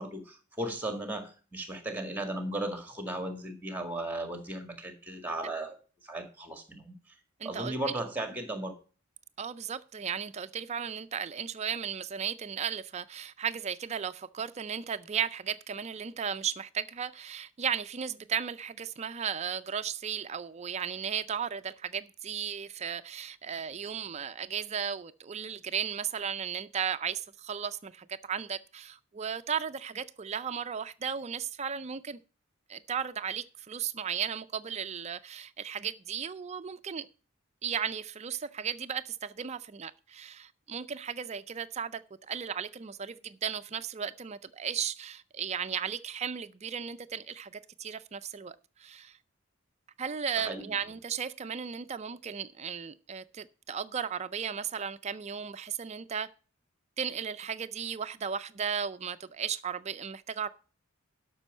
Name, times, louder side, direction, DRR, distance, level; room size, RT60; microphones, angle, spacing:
voice 1, 0.0-5.8 6.0-7.0 7.4-8.7 50.4-50.7, right 1 dB, 10° right, 1.8 m, -36 dB
voice 2, 7.4-8.0 9.4-32.2 32.7-37.1 37.6-49.2 50.0-56.3 57.0-60.5, right 7 dB, 30° right, 0.4 m, -35 dB
12.0 x 6.1 x 5.4 m
head